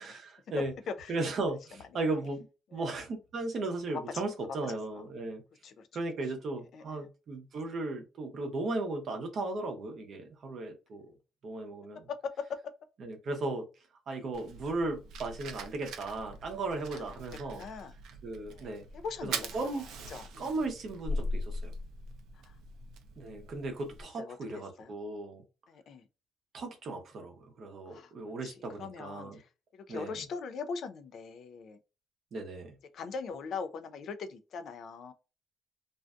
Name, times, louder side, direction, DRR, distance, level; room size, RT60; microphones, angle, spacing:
voice 1, 0.0-0.7 1.1-2.4 2.7-5.4 5.9-11.1 11.4-12.0 13.0-13.6 14.1-17.6 18.2-18.8 19.2-19.8 20.4-21.7 23.2-25.4 26.5-29.4 29.9-30.2 32.3-32.8, right 2 dB, 40° right, 0.7 m, -36 dB
voice 2, 0.6-1.1 2.7-2.9 3.9-4.3 4.7-5.0 5.6-5.9 6.7-7.1 11.9-12.6 14.1-14.2 16.9-17.0 17.5-17.9 18.5-20.5 22.3-22.6 24.2-24.9 25.7-26.1 27.9-28.1 28.4-31.8 32.9-35.1, left 5 dB, 50° left, 0.3 m, -41 dB
Fire, 14.3-24.0, equal, 75° right, 0.5 m, -41 dB
2.5 x 2.2 x 2.4 m
cardioid pair, 165°, 0 cm